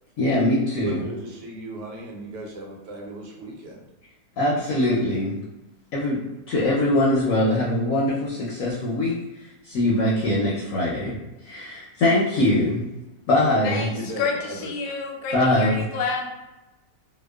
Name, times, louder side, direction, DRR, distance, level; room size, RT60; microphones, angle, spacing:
voice 1, 0.2-1.0 4.4-5.4 5.9-6.2 6.5-9.2 9.6-11.2 11.4-12.8 13.3-13.9 15.3-15.8, left 1 dB, 70° left, -6 dB, 0.9 m, -22 dB
voice 2, 0.8-3.8 13.9-14.7, right 1 dB, 80° right, -2 dB, 1.2 m, -36 dB
voice 3, 13.6-16.3, left 4 dB, 85° left, 1 dB, 1.2 m, -29 dB
2.8 x 2.1 x 2.2 m, 1.0 s
omnidirectional pair, 1.8 m